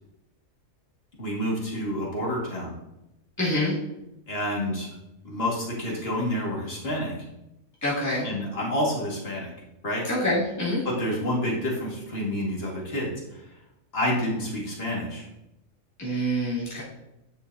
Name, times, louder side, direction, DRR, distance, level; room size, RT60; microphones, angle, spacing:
voice 1, 1.2-2.7 4.3-4.9 5.2-7.1 8.2-9.5 9.8-10.1 10.8-13.1 13.9-15.3, left 1 dB, 45° left, -3 dB, 2.2 m, -28 dB
voice 2, 3.4-3.7 7.8-8.3 10.1-10.8 16.0-16.8, left 1 dB, 10° left, -9 dB, 2.3 m, -26 dB
10.5 x 6.6 x 2.7 m, 0.89 s
omnidirectional pair, 1.4 m